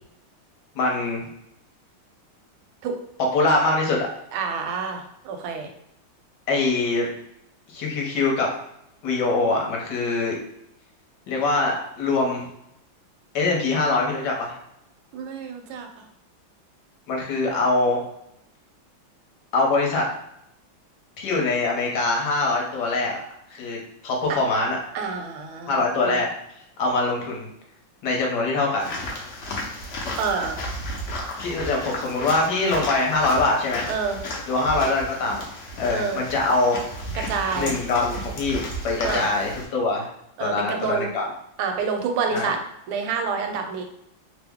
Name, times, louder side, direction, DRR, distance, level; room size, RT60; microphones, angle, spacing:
voice 1, 0.7-1.2 3.3-4.1 6.5-7.1 7.7-8.5 9.0-10.4 11.3-12.4 13.3-14.5 17.1-18.0 19.5-20.1 21.2-23.2 23.5-23.8 24.0-24.8 25.7-26.3 26.8-27.5 28.0-28.9 31.4-33.9 34.5-35.4 35.8-36.8 37.5-40.1 40.4-41.3 42.3-42.5, left 3 dB, 65° left, -1 dB, 1.2 m, -23 dB
voice 2, 4.3-5.7 15.1-16.1 24.3-24.4 24.9-26.2 30.2-30.6 33.9-34.2 35.9-36.2 37.2-37.7 39.0-39.3 40.4-41.1 41.6-42.6 42.9-43.8, right 5 dB, 85° right, 4 dB, 1.4 m, -28 dB
sound 1, 28.8-39.6, left 1 dB, 80° left, 0.6 m, -33 dB
3.4 x 2.0 x 3.5 m, 0.78 s
omnidirectional pair, 2.2 m